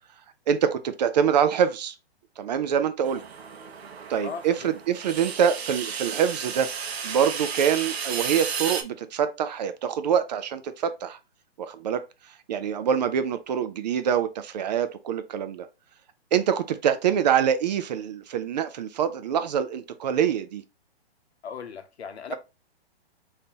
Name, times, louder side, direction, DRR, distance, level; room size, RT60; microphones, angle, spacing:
voice 1, 0.5-1.9 2.4-3.2 4.1-6.7 7.0-11.2 11.6-12.0 12.5-15.7 16.3-20.6 22.3-22.4, right 8 dB, 45° right, 0.4 m, -25 dB
sound 1, 3.0-8.8, right 7 dB, 75° right, 0.7 m, -33 dB
voice 2, 4.2-4.7 21.4-22.4, left 6 dB, 90° left, 0.8 m, -37 dB
3.6 x 2.7 x 2.7 m
hypercardioid pair, 140°, 31 cm